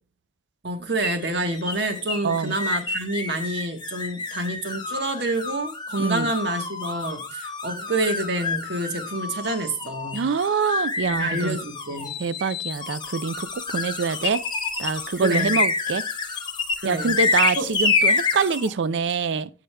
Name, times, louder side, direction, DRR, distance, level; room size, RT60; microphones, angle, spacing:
voice 1, 0.6-10.2 11.2-12.2 15.2-15.5 16.8-17.1 17.6-17.7, right 2 dB, 70° right, 1.2 m, -28 dB
sound 1, 1.0-18.7, left 4 dB, 25° left, 0.9 m, -28 dB
voice 2, 2.2-2.5 6.0-6.3 10.1-11.6 12.2-14.4 14.8-16.0 16.8-19.5, right 5 dB, 85° right, 0.5 m, -25 dB
14.5 x 5.0 x 2.2 m
head